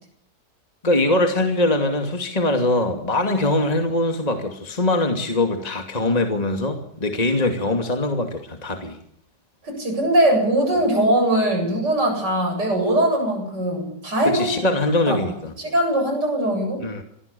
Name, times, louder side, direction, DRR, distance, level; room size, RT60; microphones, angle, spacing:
voice 1, 0.8-9.0 14.3-15.5 16.8-17.0, left 2 dB, 20° left, 5 dB, 2.6 m, -22 dB
voice 2, 9.6-14.5 15.1-15.2 15.6-16.8, right 1 dB, 80° right, 4 dB, 8.7 m, -21 dB
25.5 x 21.5 x 7.0 m, 0.68 s
omnidirectional pair, 1.8 m